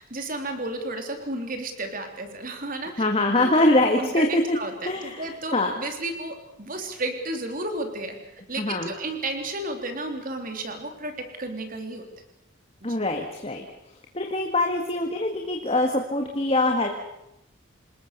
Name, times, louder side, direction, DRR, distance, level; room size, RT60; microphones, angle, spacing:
voice 1, 0.0-2.9 3.4-3.5 4.0-4.7 5.0-11.1 11.4-12.0 12.8-13.0, right 2 dB, 40° right, 5 dB, 3.6 m, -32 dB
voice 2, 3.0-4.6 4.8-5.7 8.6-8.9 12.8-13.6 14.1-16.9, left 2 dB, 30° left, 3 dB, 2.0 m, -23 dB
27.0 x 20.0 x 6.9 m, 0.86 s
head